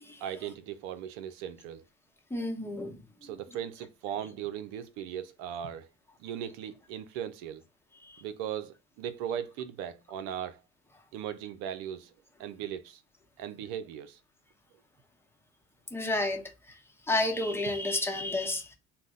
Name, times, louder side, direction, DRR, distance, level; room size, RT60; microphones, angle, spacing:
voice 1, 0.2-1.8 3.2-5.9 6.2-7.6 8.2-10.6 11.1-12.1 12.4-13.0 13.4-14.2, right 9 dB, 70° right, 0.5 m, -38 dB
voice 2, 2.3-3.0 8.0-8.2 15.9-16.4 17.1-18.7, left 2 dB, 5° left, 0.8 m, -30 dB
2.2 x 2.0 x 3.7 m
hypercardioid pair, 75°, 34 cm